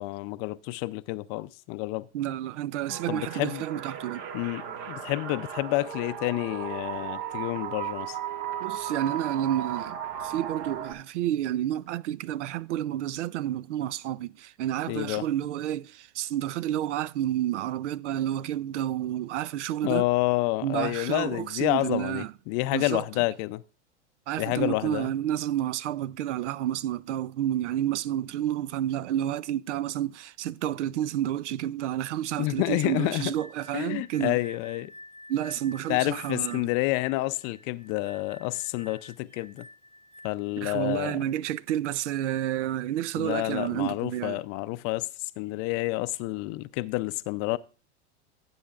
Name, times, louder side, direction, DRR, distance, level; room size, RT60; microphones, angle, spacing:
voice 1, 0.0-2.1 2.9-3.6 4.3-8.2 14.9-15.3 19.8-23.6 24.4-25.1 32.4-33.3 33.7-34.9 35.9-39.7 40.2-41.2 43.2-45.1 45.4-47.6, left 20 dB, 40° left, 0.5 m, -29 dB
voice 2, 2.1-4.2 8.6-20.0 20.6-22.3 22.7-23.0 24.3-34.4 35.3-36.7 40.6-44.4, right 12 dB, 80° right, 0.5 m, -30 dB
sound 1, 2.9-10.9, right 9 dB, 55° right, 1.4 m, -36 dB
sound 2, 32.4-40.6, left 1 dB, 10° right, 1.0 m, -50 dB
14.5 x 7.7 x 2.4 m
hypercardioid pair, 115°, 35 cm